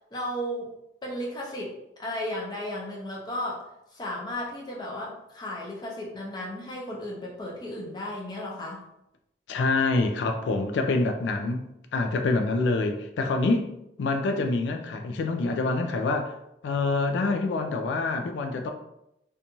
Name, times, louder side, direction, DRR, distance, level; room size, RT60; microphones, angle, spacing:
voice 1, 0.1-0.7 1.0-1.7 2.0-3.7 3.9-8.9, left 1 dB, 25° left, -3 dB, 0.5 m, -34 dB
voice 2, 9.5-13.7 14.0-16.3 16.6-18.7, left 3 dB, 85° left, 6 dB, 0.3 m, -26 dB
2.6 x 2.3 x 2.9 m, 0.84 s
head